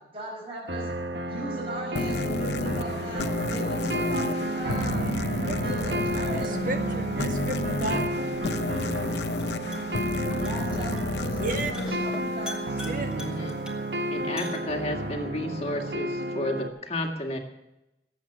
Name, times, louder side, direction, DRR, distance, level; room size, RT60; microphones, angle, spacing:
voice 1, 0.1-0.9 1.2-5.1 5.4-6.6 10.2-12.9, right 2 dB, 35° right, -1 dB, 5.4 m, -38 dB
sound 1, 0.7-16.7, right 1 dB, 80° right, 1.3 m, -32 dB
sound 2, 2.0-13.1, left 2 dB, 75° left, 0.7 m, -31 dB
voice 2, 6.3-8.0 11.4-11.7 12.8-13.1, right 2 dB, 50° right, 4 dB, 1.8 m, -33 dB
sound 3, 8.1-15.1, left 1 dB, 5° right, 2.2 m, -46 dB
voice 3, 12.8-13.6 14.1-17.4, left 1 dB, 35° left, 3 dB, 2.0 m, -32 dB
19.0 x 8.2 x 7.1 m, 0.90 s
head